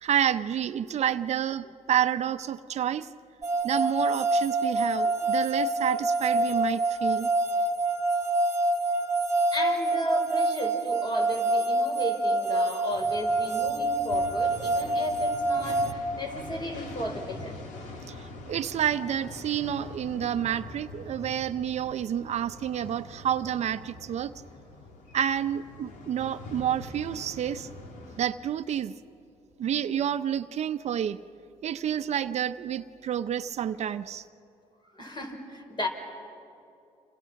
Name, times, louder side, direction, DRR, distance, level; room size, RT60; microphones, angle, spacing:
voice 1, 0.0-3.1 3.6-7.3 18.1-24.3 25.1-27.7 28.2-28.9 29.6-31.2 31.6-34.2, right 10 dB, 60° right, 11 dB, 0.8 m, -29 dB
sound 1, 3.4-15.9, right 2 dB, 20° right, 2.2 m, -26 dB
voice 2, 9.5-17.6 34.9-35.9, left 1 dB, 35° left, 3 dB, 5.4 m, -34 dB
sound 2, 12.9-28.2, left 2 dB, 80° left, 3.0 m, -44 dB
30.0 x 27.5 x 5.9 m, 2.7 s
cardioid pair, 80°, 13 cm